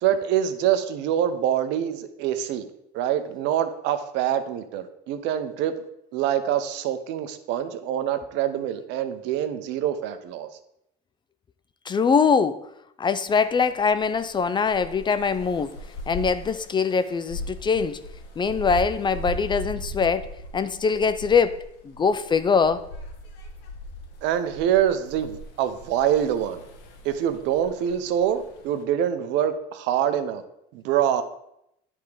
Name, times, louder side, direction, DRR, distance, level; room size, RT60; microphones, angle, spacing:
voice 1, 0.0-2.7 2.9-5.7 6.1-10.5 24.2-26.6 27.0-30.4 30.7-31.2, right 10 dB, 70° right, 0.8 m, -25 dB
voice 2, 11.9-12.7 13.0-15.7 16.1-18.0 18.4-22.9, left 5 dB, 25° left, 0.4 m, -23 dB
sound 1, 13.4-28.8, left 1 dB, 70° left, 1.4 m, -39 dB
10.0 x 3.6 x 4.9 m
supercardioid pair, 105°, 19 cm